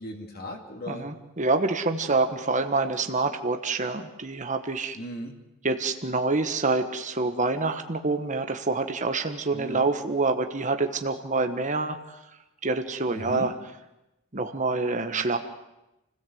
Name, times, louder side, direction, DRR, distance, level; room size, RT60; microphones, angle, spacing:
voice 1, 0.0-1.1 5.0-5.3 9.5-9.9 13.1-13.5, left 1 dB, 50° left, 2 dB, 2.5 m, -37 dB
voice 2, 0.9-5.0 5.6-12.0 12.6-13.5 14.3-15.4, right 3 dB, 35° right, 7 dB, 1.4 m, -26 dB
29.0 x 17.0 x 7.9 m, 0.95 s
head